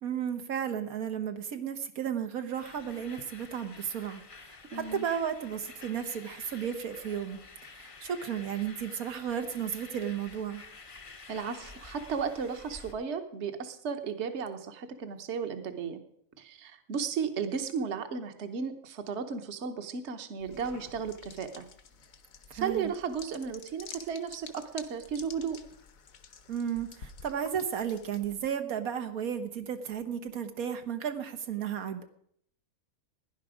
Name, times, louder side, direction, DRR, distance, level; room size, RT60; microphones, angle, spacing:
voice 1, 0.0-7.4 7.7-10.6 22.5-22.9 26.5-32.1, right 8 dB, 80° right, 7 dB, 1.5 m, -34 dB
sound 1, 2.5-12.9, left 4 dB, 30° left, 0.6 m, -50 dB
voice 2, 4.7-5.1 11.3-16.0 16.4-21.6 22.5-25.6, right 6 dB, 55° right, 8 dB, 1.3 m, -34 dB
sound 2, 20.4-28.5, left 6 dB, 70° left, 1.4 m, -50 dB
16.5 x 10.5 x 5.0 m, 0.68 s
omnidirectional pair, 1.5 m